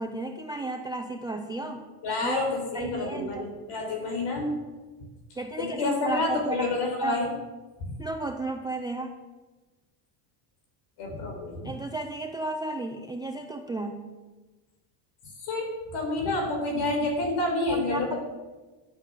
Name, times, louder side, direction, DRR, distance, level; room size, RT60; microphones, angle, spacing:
voice 1, 0.0-1.9 2.2-2.4 2.7-3.5 5.4-7.2 8.0-9.1 11.6-14.1 17.7-18.1, right 2 dB, 10° right, 5 dB, 0.4 m, -33 dB
voice 2, 2.0-4.6 5.6-7.3 7.8-8.0 11.0-11.7 15.4-18.1, left 2 dB, 55° left, 2 dB, 4.5 m, -29 dB
11.5 x 8.9 x 6.7 m, 1.2 s
cardioid pair, 160°, 48 cm